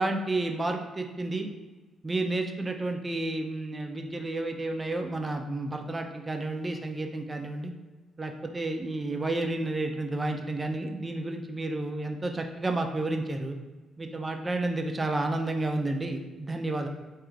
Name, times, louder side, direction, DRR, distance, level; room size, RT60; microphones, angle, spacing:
voice 1, 0.0-1.5 2.0-7.7 8.2-13.6 14.0-16.9, right 2 dB, 20° right, 4 dB, 0.5 m, -31 dB
3.7 x 2.8 x 4.5 m, 1.3 s
cardioid pair, 90°, 0 cm